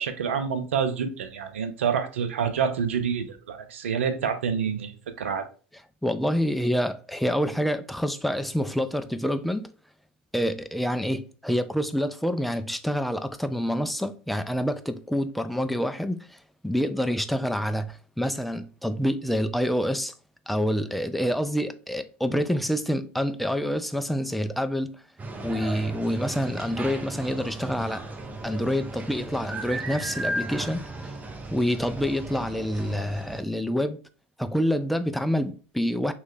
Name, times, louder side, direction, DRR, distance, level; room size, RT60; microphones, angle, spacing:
voice 1, 0.0-5.5, right 7 dB, 80° right, 0.5 m, -27 dB
voice 2, 6.0-9.7 10.3-16.4 16.6-20.1 20.5-25.0 25.4-28.1 28.4-31.1 31.5-34.0 34.4-36.1, equal, ahead, 0.3 m, -27 dB
sound 1, 25.2-33.4, right 2 dB, 20° right, 0.7 m, -35 dB
3.1 x 2.3 x 3.6 m
hypercardioid pair, 85°, 7 cm